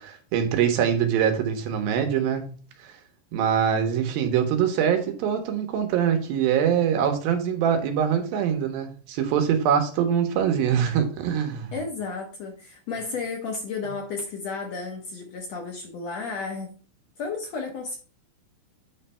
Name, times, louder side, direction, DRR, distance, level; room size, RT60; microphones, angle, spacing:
voice 1, 0.0-2.9 3.3-11.7, right 8 dB, 80° right, 5 dB, 2.9 m, -24 dB
voice 2, 11.7-16.7 17.2-18.0, left 4 dB, 65° left, 2 dB, 1.8 m, -33 dB
9.3 x 3.3 x 5.5 m, 0.39 s
omnidirectional pair, 4.2 m